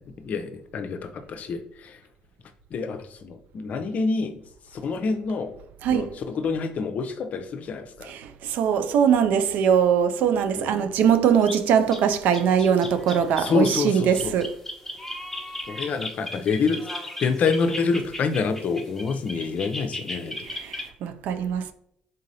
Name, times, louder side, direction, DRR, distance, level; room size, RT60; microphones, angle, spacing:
voice 1, 0.2-1.6 2.7-4.4 4.8-5.5 5.9-8.1 10.6-10.9 13.4-14.3 15.7-16.8 17.2-20.4, left 5 dB, 55° left, 0.6 m, -27 dB
voice 2, 5.8-6.2 8.0-14.5 20.5-21.7, right 8 dB, 75° right, 0.4 m, -22 dB
sound 1, 11.4-11.6 11.9-12.0 12.3-20.9, left 1 dB, 10° left, 1.0 m, -36 dB
3.9 x 3.7 x 2.7 m
supercardioid pair, 70°, 3 cm